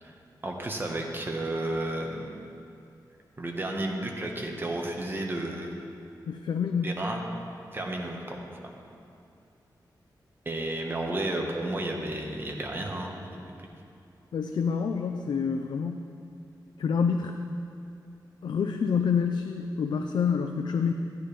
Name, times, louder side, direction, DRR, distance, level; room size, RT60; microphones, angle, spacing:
voice 1, 0.4-2.5 3.4-5.8 6.8-7.2 7.7-8.9 10.4-13.5, right 1 dB, 30° right, 1 dB, 1.1 m, -32 dB
voice 2, 6.3-6.9 14.3-16.1 16.8-17.4 18.4-20.9, left 6 dB, 80° left, 5 dB, 0.4 m, -27 dB
13.5 x 9.4 x 3.3 m, 2.6 s
wide cardioid pair, 130°, 8 cm